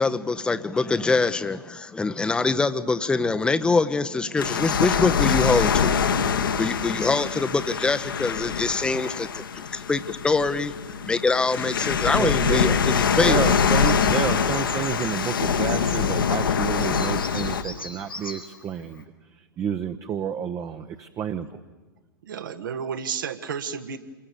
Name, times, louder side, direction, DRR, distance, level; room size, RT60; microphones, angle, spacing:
voice 1, 0.0-9.4 9.7-10.7 11.1-13.5, left 3 dB, 10° left, 11 dB, 0.8 m, -24 dB
sound 1, 4.4-17.6, left 6 dB, 70° left, 1.5 m, -24 dB
voice 2, 12.1-12.6 12.9-19.0 19.6-21.6, right 8 dB, 25° right, 8 dB, 0.9 m, -30 dB
Bird vocalization bird call bird song, 13.4-19.0, left 2 dB, 85° left, 4.3 m, -40 dB
voice 3, 22.2-24.0, right 7 dB, 65° right, 11 dB, 1.5 m, -31 dB
28.0 x 22.0 x 6.9 m, 1.2 s
figure-of-eight pair, 100°, 12 cm